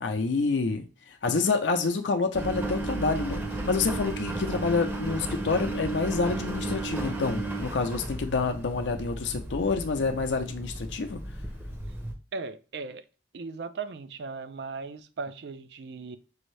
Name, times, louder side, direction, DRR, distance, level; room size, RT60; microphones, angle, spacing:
voice 1, 0.0-11.2, left 4 dB, 80° left, 0.5 m, -28 dB
Engine, 2.3-12.1, right 2 dB, 10° right, 0.6 m, -34 dB
voice 2, 12.3-13.0 13.3-16.2, right 4 dB, 65° right, 0.4 m, -37 dB
6.2 x 2.7 x 3.2 m
head